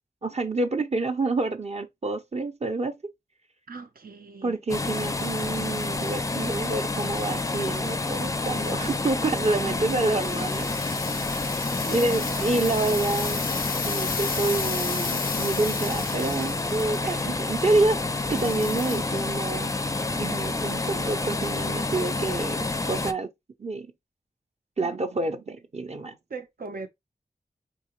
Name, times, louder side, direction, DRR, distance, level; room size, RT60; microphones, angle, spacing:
voice 1, 0.2-3.1 4.4-11.1 11.9-13.4 13.8-19.7 20.1-23.3 23.6-23.9 24.8-26.2, right 2 dB, 50° right, 0.7 m, -28 dB
voice 2, 3.7-4.6 9.3-10.1 10.5-10.6 11.9-13.0 17.0-17.5 26.3-26.9, right 4 dB, 90° right, 0.9 m, -40 dB
sound 1, 4.7-23.1, left 2 dB, 20° left, 0.4 m, -29 dB
sound 2, 10.1-17.2 18.3-19.0, left 5 dB, 80° left, 0.5 m, -34 dB
4.6 x 2.9 x 3.0 m
wide cardioid pair, 90°, 15 cm